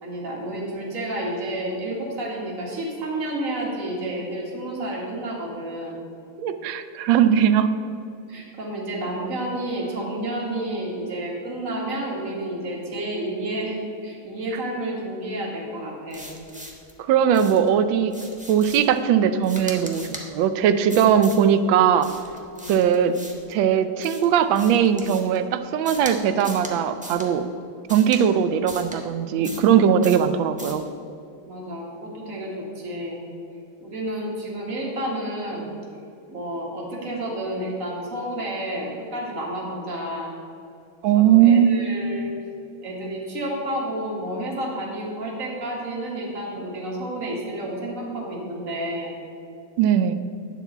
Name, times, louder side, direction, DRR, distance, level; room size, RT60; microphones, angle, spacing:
voice 1, 0.0-6.0 8.3-16.3 22.6-22.9 31.5-33.2 33.8-35.7 36.3-40.3 41.1-42.3 42.8-49.1, right 1 dB, 40° right, -3 dB, 2.1 m, -30 dB
voice 2, 6.4-7.7 17.1-18.1 18.5-22.1 22.7-23.2 23.5-27.4 27.9-30.8 41.0-41.8 49.8-50.1, right 8 dB, 75° right, 10 dB, 1.3 m, -19 dB
sound 1, 16.1-16.9 17.3-17.7 18.1-19.0 19.4-20.3 20.9-21.4 22.0-23.5 24.0-25.4 25.8-26.1 26.4-26.7 27.0-27.3 27.9-28.2 28.7-29.0 29.4-29.7 30.0-30.3 30.6-30.8, equal, 5° right, 0.6 m, -39 dB
9.8 x 4.7 x 7.9 m, 2.5 s
omnidirectional pair, 2.2 m